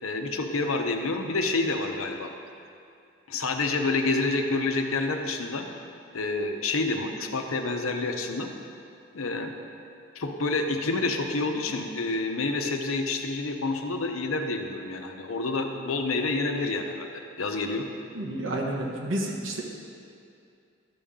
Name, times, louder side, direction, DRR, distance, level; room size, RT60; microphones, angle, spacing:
voice 1, 0.0-2.3 3.3-5.7 6.1-8.5 9.1-9.5 10.1-17.9, left 3 dB, 85° left, 4 dB, 0.8 m, -28 dB
voice 2, 18.1-19.6, right 1 dB, 65° right, -1 dB, 1.2 m, -30 dB
12.5 x 7.0 x 3.7 m, 2.5 s
head